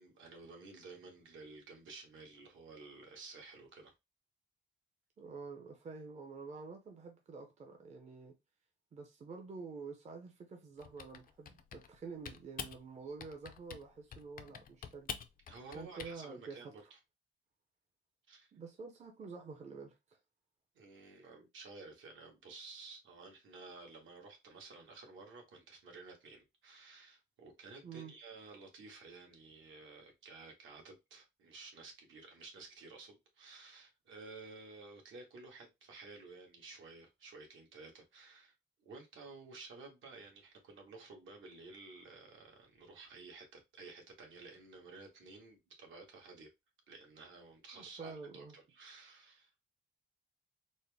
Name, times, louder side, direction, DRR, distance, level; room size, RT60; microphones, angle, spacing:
voice 1, 0.0-3.9 15.5-17.0 18.3-18.5 20.7-38.5 38.8-46.5 46.9-49.5, right 3 dB, 75° right, 1.4 m, -53 dB
voice 2, 5.2-8.3 8.9-15.1 15.7-16.7 18.5-20.2 27.8-28.1 47.7-48.5, right 4 dB, 35° right, 0.6 m, -48 dB
Typing, 10.8-12.0 12.3-12.8 13.2-13.9 14.1-16.1, left 7 dB, 45° left, 0.4 m, -46 dB
4.2 x 2.0 x 3.4 m
wide cardioid pair, 160°, 20 cm